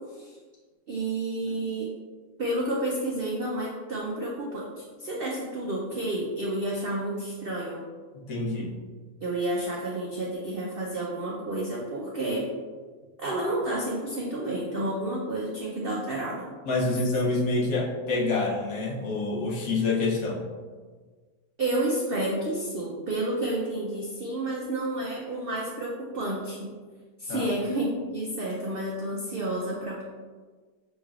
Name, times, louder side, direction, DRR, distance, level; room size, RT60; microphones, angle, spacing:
voice 1, 0.9-1.9 2.4-7.8 9.2-12.5 13.2-16.4 21.6-26.8 27.2-30.0, right 1 dB, 80° right, -3 dB, 0.5 m, -30 dB
voice 2, 8.3-8.8 16.7-20.4 27.3-27.5, left 3 dB, 65° left, -2 dB, 1.1 m, -27 dB
6.2 x 3.2 x 2.4 m, 1.5 s
omnidirectional pair, 1.7 m